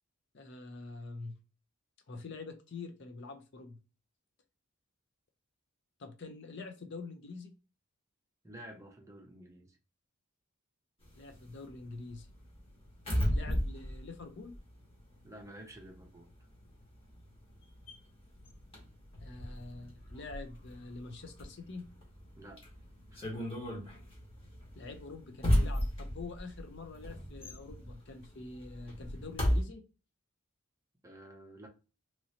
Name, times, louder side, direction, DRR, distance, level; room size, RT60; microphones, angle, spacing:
voice 1, 0.3-1.3 2.1-3.8 6.0-7.5 11.2-12.3 13.3-14.5 19.2-21.9 24.8-29.8, left 3 dB, 55° left, 6 dB, 0.5 m, -46 dB
voice 2, 8.4-9.8 15.2-16.3 22.4-22.6 23.1-23.2 31.0-31.7, right 1 dB, 15° right, 2 dB, 0.5 m, -50 dB
sound 1, 11.0-15.4 15.7-29.6, equal, 25° left, 1.0 m, -35 dB
3.0 x 2.6 x 2.8 m, 0.32 s
head